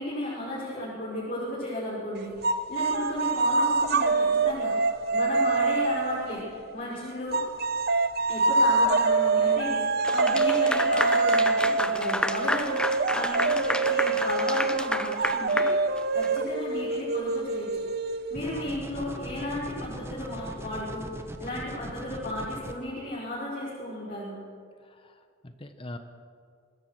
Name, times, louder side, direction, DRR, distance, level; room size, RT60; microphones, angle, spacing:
voice 1, 0.0-4.7 5.1-6.5 6.7-7.4 8.3-9.8 10.1-12.8 13.1-15.7 16.1-17.9 18.3-24.4, left 1 dB, 45° left, -7 dB, 5.9 m, -34 dB
sound 1, 2.4-6.8 7.3-18.7, right 3 dB, 50° right, 0.8 m, -25 dB
Clapping / Applause, 10.0-16.4, left 1 dB, 5° left, 0.8 m, -30 dB
sound 2, 18.4-22.7, right 1 dB, 15° right, 1.3 m, -40 dB
voice 2, 24.8-26.0, left 1 dB, 25° left, 7 dB, 1.1 m, -43 dB
25.0 x 20.5 x 6.2 m, 2.2 s
head